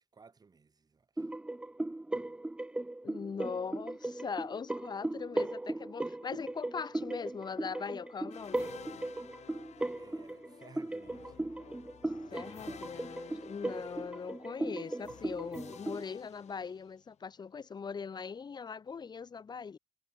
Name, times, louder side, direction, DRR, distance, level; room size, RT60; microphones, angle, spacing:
voice 1, 0.0-1.3 9.5-11.6 12.3-13.0, right 4 dB, 30° right, 4.8 m, -59 dB
sound 1, 1.2-16.0, right 2 dB, 10° right, 0.4 m, -37 dB
voice 2, 3.0-8.7 12.3-19.8, left 5 dB, 35° left, 0.8 m, -40 dB
sound 2, 8.3-17.2, left 9 dB, 65° left, 1.7 m, -53 dB
wide cardioid pair, 145°, 13 cm